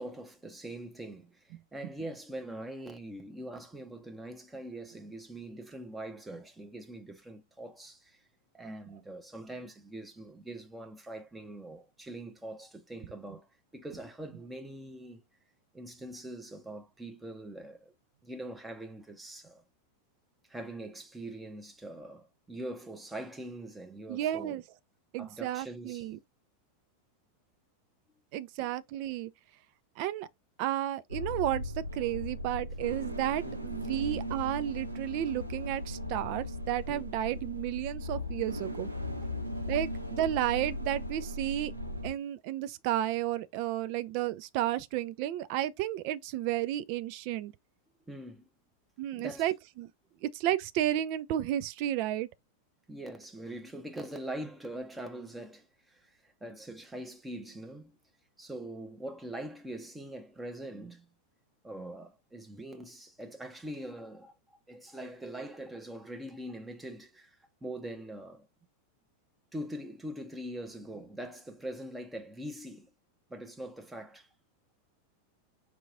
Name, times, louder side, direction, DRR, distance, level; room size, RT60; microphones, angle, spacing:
voice 1, 0.0-8.2 8.5-15.2 15.7-17.9 18.2-19.6 20.5-24.6 25.1-26.1 28.6-28.7 33.4-33.6 36.9-37.0 48.1-48.5 49.1-49.5 52.9-58.0 58.4-61.0 61.6-68.5 69.5-72.9 73.3-74.3, right 1 dB, 10° right, 0.8 m, -43 dB
voice 2, 24.1-24.6 25.1-26.2 28.3-29.3 30.0-30.3 30.6-38.9 39.7-41.7 42.0-47.5 49.0-49.9 50.2-52.3, right 13 dB, 45° right, 0.3 m, -32 dB
sound 1, 31.1-42.1, left 1 dB, 85° right, 0.8 m, -37 dB
4.7 x 2.9 x 2.5 m
figure-of-eight pair, 90°, 0 cm